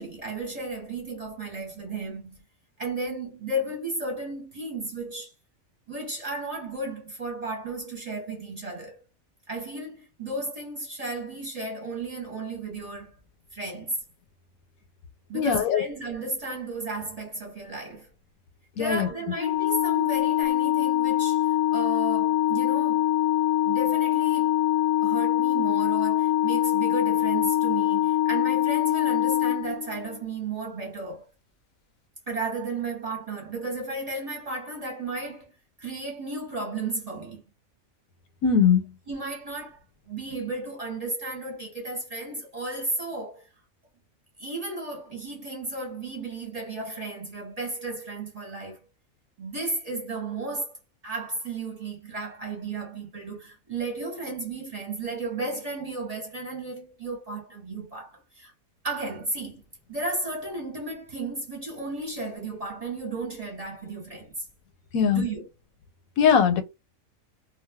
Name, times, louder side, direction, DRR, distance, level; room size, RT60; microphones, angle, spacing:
voice 1, 0.0-2.4 2.8-5.3 5.9-9.0 9.5-13.2 13.5-14.0 15.3-18.1 18.8-23.1 23.6-24.6 25.0-31.3 32.3-35.5 35.8-37.4 39.1-39.8 40.1-43.5 44.4-48.8 49.4-50.7 51.0-58.5 58.8-59.6 59.9-64.5 65.1-65.5, right 2 dB, 30° right, 0.9 m, -34 dB
voice 2, 15.3-15.8 18.8-19.1 38.4-38.9 64.9-65.2 66.2-66.6, left 7 dB, 85° left, 1.1 m, -20 dB
Organ, 19.4-30.2, left 14 dB, 55° left, 0.5 m, -24 dB
2.5 x 2.2 x 3.4 m
omnidirectional pair, 1.4 m